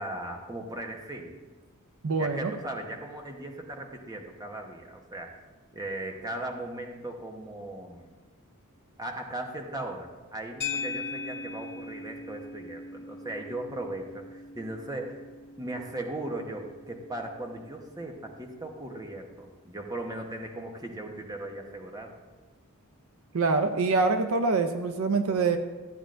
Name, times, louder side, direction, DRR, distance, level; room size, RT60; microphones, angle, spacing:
voice 1, 0.0-1.4 2.1-5.4 5.7-8.1 9.0-15.2 15.6-22.1, right 1 dB, 15° right, 2 dB, 1.0 m, -38 dB
voice 2, 2.0-2.5 23.3-25.6, right 4 dB, 65° right, 8 dB, 0.5 m, -25 dB
sound 1, 10.6-19.0, left 4 dB, 45° left, 0.9 m, -41 dB
14.0 x 8.9 x 2.6 m, 1.3 s
head